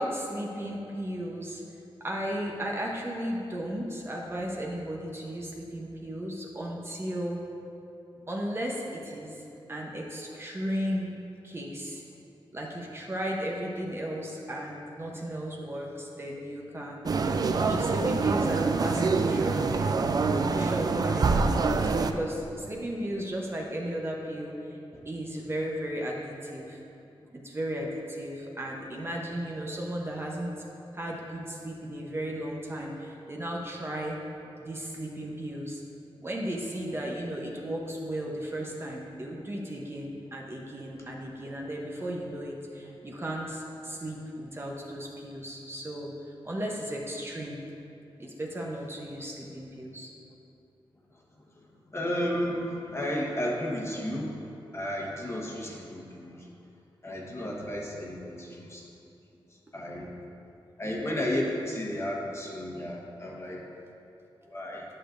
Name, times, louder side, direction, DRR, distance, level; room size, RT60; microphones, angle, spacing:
voice 1, 0.0-1.6 2.0-7.4 8.3-9.4 9.7-11.1 11.4-12.0 12.5-17.1 17.7-20.1 20.5-24.8 25.0-26.8 27.3-30.6 30.9-34.2 34.6-35.8 36.2-46.1 46.4-47.6 48.2-50.1, equal, 25° right, -1 dB, 0.8 m, -35 dB
sound 1, 17.0-22.1, right 4 dB, 45° right, 0.3 m, -25 dB
voice 2, 51.9-56.5 57.0-58.8 59.7-60.2 60.8-63.6 64.4-64.8, left 1 dB, 30° left, -3 dB, 1.2 m, -33 dB
10.5 x 6.5 x 2.6 m, 2.7 s
wide cardioid pair, 105°, 9 cm